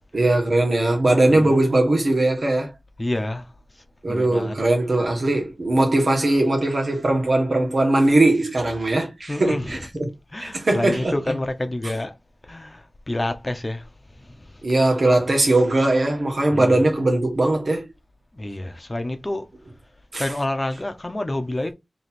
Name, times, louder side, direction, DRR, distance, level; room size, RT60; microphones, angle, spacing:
voice 1, 0.1-2.7 4.0-10.1 10.4-11.2 14.6-17.9 20.1-20.2, right 2 dB, 75° right, 1.5 m, -20 dB
voice 2, 1.3-1.6 3.0-3.5 4.1-4.6 9.3-9.8 10.3-12.2 12.4-13.9 14.2-14.6 16.5-16.8 18.3-19.5 20.1-21.7, left 1 dB, 35° left, 0.8 m, -28 dB
3.2 x 3.1 x 4.3 m
wide cardioid pair, 65°, 0 cm